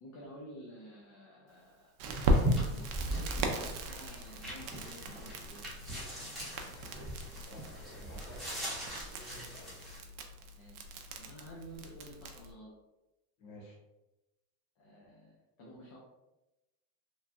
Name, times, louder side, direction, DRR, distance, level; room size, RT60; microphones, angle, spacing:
voice 1, 0.0-1.9 2.6-3.5 3.9-5.6 10.6-12.7 14.8-16.0, equal, 40° left, -4 dB, 0.6 m, -51 dB
sound 1, 2.0-10.0, right 1 dB, ahead, 0.9 m, -39 dB
Crackle, 2.0-12.5, right 1 dB, 50° right, 0.5 m, -37 dB
voice 2, 7.4-8.7 9.2-9.8 11.2-11.3 13.4-13.8, equal, 70° left, -1 dB, 1.0 m, -52 dB
3.0 x 2.2 x 2.6 m, 0.97 s
cardioid pair, 140°, 45 cm